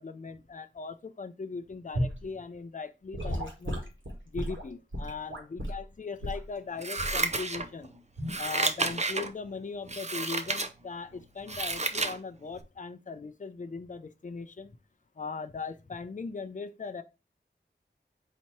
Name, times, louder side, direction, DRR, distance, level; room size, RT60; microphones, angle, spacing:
voice 1, 0.0-3.9 4.3-7.9 8.4-14.7 15.2-17.0, left 4 dB, 40° left, 0.5 m, -39 dB
Gurgling / Sink (filling or washing) / Liquid, 1.9-2.2 3.1-5.8 6.2-6.5 7.0-7.2 8.2-8.4, equal, 85° right, 1.5 m, -34 dB
Scissors, 6.8-7.9 8.3-9.3 9.9-10.7 11.1-12.2 12.6-12.7, right 3 dB, 35° right, 0.6 m, -31 dB
4.2 x 2.9 x 4.4 m
wide cardioid pair, 55°, 19 cm